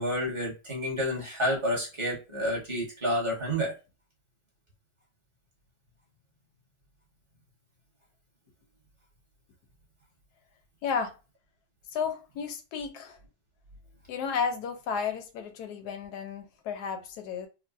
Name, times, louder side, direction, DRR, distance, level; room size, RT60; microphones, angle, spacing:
voice 1, 0.0-3.7, equal, 20° right, 0.8 m, -29 dB
voice 2, 10.8-11.1 11.9-13.2 14.1-17.5, left 6 dB, 65° left, 1.0 m, -33 dB
3.8 x 2.3 x 2.4 m
omnidirectional pair, 2.2 m